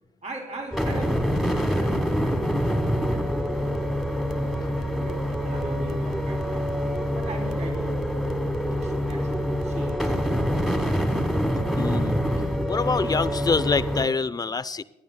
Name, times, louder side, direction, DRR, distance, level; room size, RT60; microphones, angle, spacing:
voice 1, 0.2-3.3 3.6-6.6 7.1-8.0 8.3-10.2 11.0-11.3, right 2 dB, 40° right, 1 dB, 2.4 m, -40 dB
sound 1, 0.7-14.1, equal, ahead, 1.4 m, -26 dB
voice 2, 11.7-12.2 12.7-14.8, left 4 dB, 20° left, 17 dB, 0.4 m, -25 dB
23.5 x 10.0 x 2.2 m, 1.0 s
supercardioid pair, 55°, 18 cm